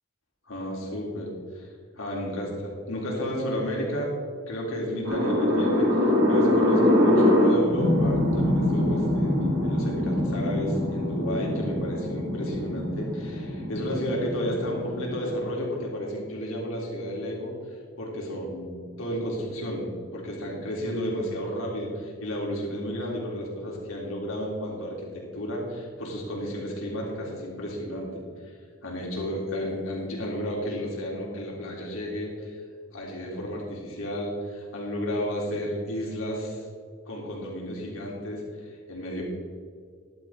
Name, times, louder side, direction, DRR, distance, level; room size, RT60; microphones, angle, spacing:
voice 1, 0.5-1.7 2.0-2.5 2.9-4.1 4.5-17.5 18.0-28.2 28.8-32.6 32.9-36.6 37.1-39.2, equal, 75° left, -3 dB, 3.5 m, -32 dB
sound 1, 5.0-15.4, left 1 dB, 80° right, 3.5 m, -24 dB
14.0 x 11.5 x 3.8 m, 2.1 s
head